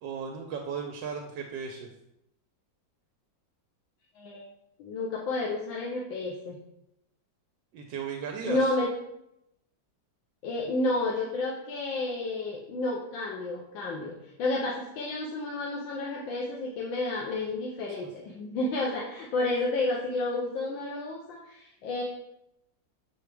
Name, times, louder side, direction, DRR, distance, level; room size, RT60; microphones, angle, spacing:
voice 1, 0.0-1.9 7.7-8.7, right 6 dB, 80° right, 2 dB, 1.3 m, -36 dB
voice 2, 4.1-4.4 4.8-6.6 8.4-8.9 10.4-14.1 14.4-22.0, left 2 dB, 90° left, -2 dB, 1.5 m, -31 dB
7.0 x 4.8 x 3.3 m, 0.83 s
omnidirectional pair, 2.0 m